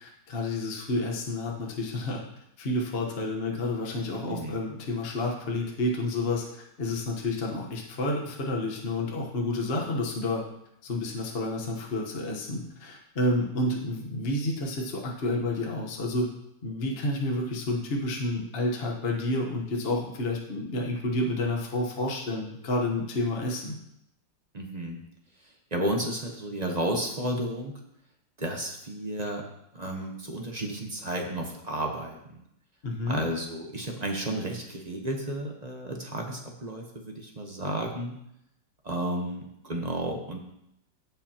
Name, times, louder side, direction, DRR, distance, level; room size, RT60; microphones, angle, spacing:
voice 1, 0.0-2.2 2.6-10.4 10.8-16.3 16.6-23.7 32.8-33.2, left 2 dB, 35° left, -1 dB, 1.2 m, -30 dB
voice 2, 24.5-25.0 25.4-27.8 28.4-29.5 29.7-32.4 33.1-38.2 38.8-40.4, right 1 dB, 30° right, 1 dB, 0.9 m, -32 dB
17.0 x 5.6 x 2.9 m, 0.79 s
omnidirectional pair, 2.0 m